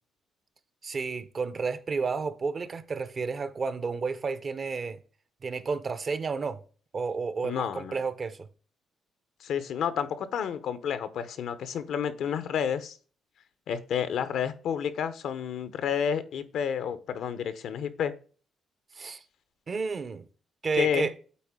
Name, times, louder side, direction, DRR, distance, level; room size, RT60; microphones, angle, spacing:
voice 1, 0.8-5.0 5.4-6.6 6.9-8.5 19.0-19.2 19.7-20.3 20.6-21.1, right 4 dB, 40° right, 0.7 m, -31 dB
voice 2, 7.4-7.9 9.4-13.0 13.7-18.1 20.8-21.1, left 8 dB, 75° left, 0.7 m, -30 dB
8.3 x 4.0 x 3.6 m
cardioid pair, 90°, 0 cm